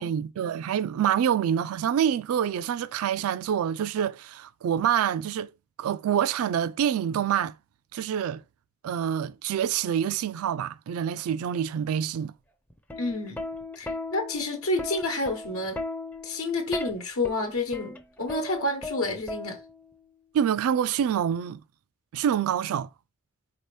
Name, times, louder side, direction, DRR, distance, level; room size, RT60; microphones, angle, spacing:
voice 1, 0.0-5.5 5.8-7.5 7.9-8.4 8.8-12.3 20.3-21.6 22.1-22.9, right 9 dB, 80° right, 0.3 m, -26 dB
Plucked string instrument, 12.7-19.9 21.0-21.3, left 2 dB, 10° left, 0.4 m, -37 dB
voice 2, 13.0-13.4 13.8-15.8 16.2-19.6, left 2 dB, 85° left, 1.0 m, -29 dB
4.4 x 2.8 x 3.2 m
head